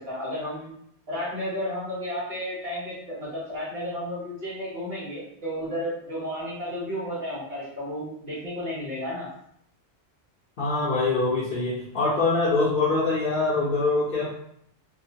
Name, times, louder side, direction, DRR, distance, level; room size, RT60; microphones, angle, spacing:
voice 1, 0.1-0.7 1.1-9.3, equal, 60° right, -7 dB, 1.5 m, -32 dB
voice 2, 10.6-14.3, left 3 dB, 55° left, -7 dB, 0.8 m, -24 dB
3.0 x 2.2 x 2.7 m, 0.70 s
omnidirectional pair, 1.1 m